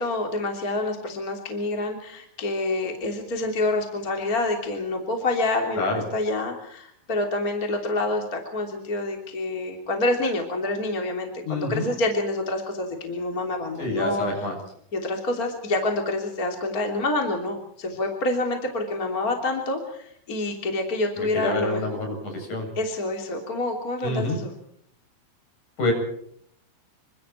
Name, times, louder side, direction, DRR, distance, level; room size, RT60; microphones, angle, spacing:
voice 1, 0.0-14.3 14.9-21.8 22.8-24.5, left 2 dB, 20° left, 2 dB, 2.8 m, -27 dB
voice 2, 11.4-11.9 13.8-14.5 21.2-22.7 24.0-24.4 25.8-25.9, left 2 dB, 40° left, 2 dB, 9.0 m, -27 dB
27.5 x 24.5 x 4.5 m, 0.68 s
omnidirectional pair, 5.6 m